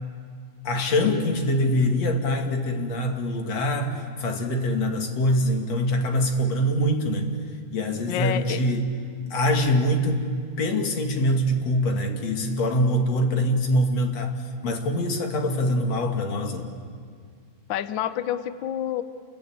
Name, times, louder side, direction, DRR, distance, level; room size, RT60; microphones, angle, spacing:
voice 1, 0.6-7.4 7.7-8.9 9.3-10.3 10.6-14.3 14.6-16.7, left 1 dB, 60° left, 3 dB, 3.1 m, -24 dB
voice 2, 8.1-8.6 17.7-19.0, left 10 dB, 85° left, 11 dB, 1.0 m, -28 dB
28.5 x 22.0 x 8.7 m, 2.1 s
omnidirectional pair, 3.4 m